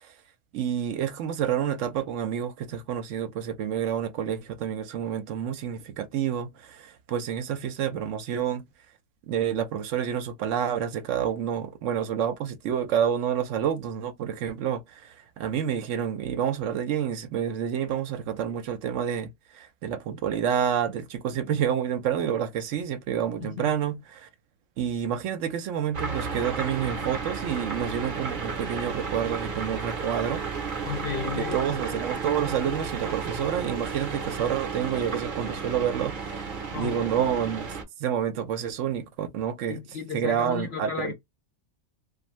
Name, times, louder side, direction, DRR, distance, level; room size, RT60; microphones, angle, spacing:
voice 1, 0.5-8.6 9.3-24.3 24.8-30.4 31.3-36.1 36.4-36.5 36.8-37.7 38.0-39.8 40.1-41.1, right 9 dB, 80° right, 1.0 m, -28 dB
voice 2, 23.4-23.7 30.8-31.6 36.7-37.1 39.7-41.1, left 7 dB, 60° left, 0.7 m, -34 dB
sound 1, 25.9-37.8, right 5 dB, 50° right, 0.8 m, -33 dB
2.6 x 2.4 x 3.0 m
omnidirectional pair, 1.3 m